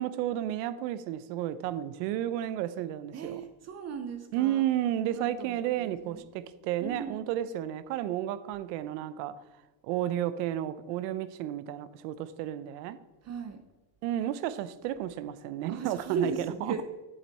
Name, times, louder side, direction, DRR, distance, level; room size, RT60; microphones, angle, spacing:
voice 1, 0.0-3.4 4.3-9.4 9.8-13.0 14.0-16.3, right 12 dB, 85° right, 0.8 m, -32 dB
voice 2, 3.1-4.6 5.1-6.2 6.8-7.3 13.2-13.6 15.7-16.8, right 5 dB, 35° right, 0.7 m, -37 dB
8.1 x 7.6 x 4.1 m
cardioid pair, 130°, 46 cm